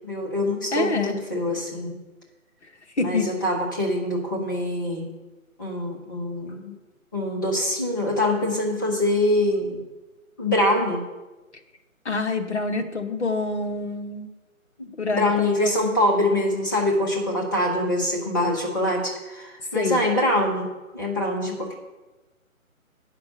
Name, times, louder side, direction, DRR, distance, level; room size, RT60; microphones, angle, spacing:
voice 1, 0.0-2.0 3.0-5.1 5.6-6.8 7.1-9.8 10.4-11.0 14.8-21.7, left 1 dB, 15° left, -2 dB, 0.9 m, -24 dB
voice 2, 0.7-1.2 3.0-3.3 12.0-14.3 15.0-15.3 15.6-15.9 19.7-20.0, left 3 dB, 50° left, 4 dB, 1.2 m, -26 dB
9.2 x 6.0 x 6.7 m, 1.1 s
figure-of-eight pair, 145°, 42 cm